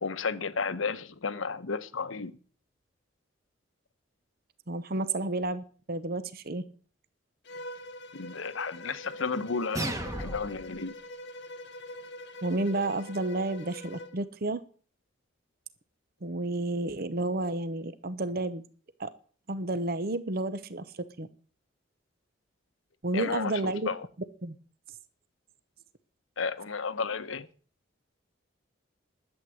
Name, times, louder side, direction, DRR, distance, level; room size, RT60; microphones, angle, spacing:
voice 1, 0.0-2.3 8.1-9.9 10.2-10.9 23.1-24.1 26.4-27.5, left 5 dB, 90° left, 0.9 m, -33 dB
voice 2, 4.7-6.6 12.4-14.6 16.2-18.6 19.0-19.1 19.5-20.9 21.2-21.3 23.0-23.9 24.4-24.6, right 2 dB, 50° right, 0.8 m, -31 dB
Bowed string instrument, 7.4-14.2, left 1 dB, 60° left, 1.2 m, -44 dB
sound 1, 9.7-10.7, right 1 dB, 15° right, 1.4 m, -34 dB
11.5 x 8.1 x 7.6 m
head